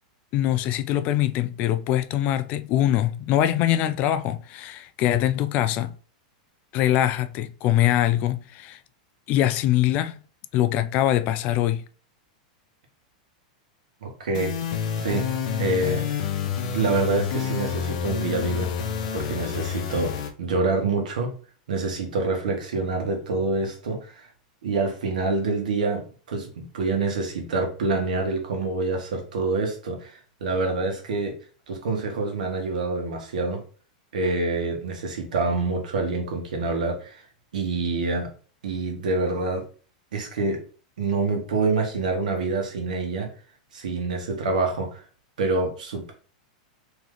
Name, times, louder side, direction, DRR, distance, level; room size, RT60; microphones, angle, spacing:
voice 1, 0.3-5.9 6.7-8.8 9.3-10.2 10.5-11.8, left 12 dB, 40° left, 0.3 m, -23 dB
voice 2, 14.0-14.6 15.0-15.3 15.6-16.3 16.6-18.7 19.1-20.1 20.4-21.4 21.7-24.3 24.6-31.4 31.7-33.6 34.1-37.2 37.5-38.3 38.6-39.6 40.1-40.6 41.0-43.3 43.7-45.0 45.4-46.1, right 3 dB, 90° right, 1.3 m, -26 dB
sound 1, 14.3-20.3, left 7 dB, 65° left, 0.7 m, -28 dB
3.3 x 3.0 x 3.8 m
supercardioid pair, 145°, 4 cm